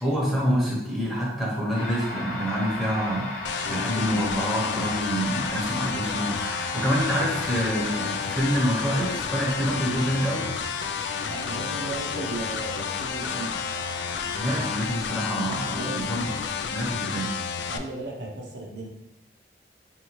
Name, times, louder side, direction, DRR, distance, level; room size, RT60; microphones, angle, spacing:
voice 1, 0.0-10.5 14.4-16.4 16.7-17.3, equal, ahead, -6 dB, 0.9 m, -27 dB
sound 1, 1.7-15.0, left 2 dB, 50° left, 0.7 m, -37 dB
sound 2, 3.4-17.8, left 6 dB, 85° left, 0.3 m, -31 dB
voice 2, 11.3-13.6 15.7-16.1 17.6-18.9, right 2 dB, 80° right, -1 dB, 0.7 m, -35 dB
4.5 x 2.7 x 3.0 m, 0.85 s
head